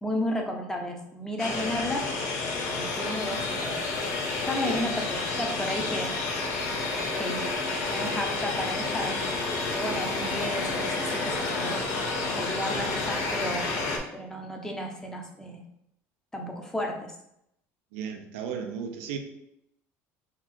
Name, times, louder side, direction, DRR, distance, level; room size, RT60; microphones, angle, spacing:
voice 1, 0.0-2.0 2.7-3.8 4.5-6.1 7.2-7.5 7.9-9.1 9.7-11.8 12.4-13.6 14.1-15.7 16.3-17.1, left 1 dB, 10° left, 2 dB, 0.7 m, -33 dB
sound 1, 1.4-14.0, left 3 dB, 70° left, 1.0 m, -30 dB
voice 2, 4.6-4.9 17.9-19.2, right 7 dB, 90° right, 4 dB, 0.6 m, -34 dB
3.7 x 2.4 x 4.5 m, 0.80 s
supercardioid pair, 110°, 6 cm